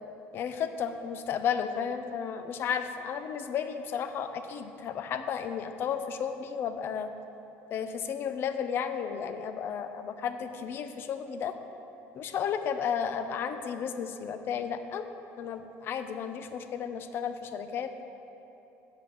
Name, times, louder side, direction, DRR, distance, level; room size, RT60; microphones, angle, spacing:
voice 1, 0.3-7.1 7.7-11.5 12.1-15.0 15.4-17.9, left 7 dB, 45° left, 9 dB, 0.5 m, -33 dB
8.2 x 5.4 x 6.7 m, 3.0 s
cardioid pair, 145°, 5 cm